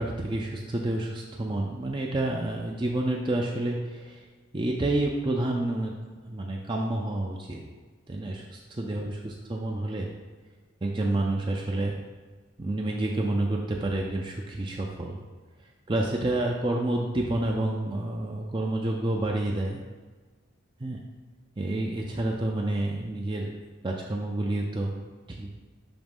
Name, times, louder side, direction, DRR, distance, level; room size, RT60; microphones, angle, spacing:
voice 1, 0.0-4.2 4.5-5.9 6.3-7.6 8.1-10.1 10.8-12.0 12.6-15.2 15.9-19.8 20.8-21.0 21.6-23.5 23.8-24.9 25.3-25.5, right 2 dB, 25° right, 0 dB, 0.4 m, -29 dB
6.1 x 3.1 x 5.3 m, 1.4 s
head